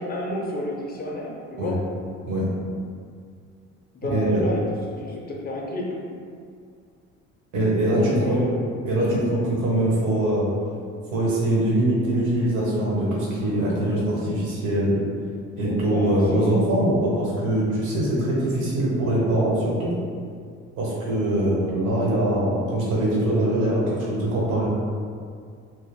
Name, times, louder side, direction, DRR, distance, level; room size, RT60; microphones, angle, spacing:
voice 1, 0.0-1.8 3.9-4.6 5.0-6.0 7.9-8.6 9.7-9.8 15.6-16.6, left 1 dB, 30° left, -2 dB, 0.6 m, -31 dB
voice 2, 4.0-4.4 7.5-8.4 8.8-10.5 11.1-15.0 15.6-19.9 20.8-24.7, right 1 dB, 75° right, -6 dB, 1.1 m, -22 dB
2.4 x 2.1 x 3.5 m, 2.2 s
cardioid pair, 90°, 30 cm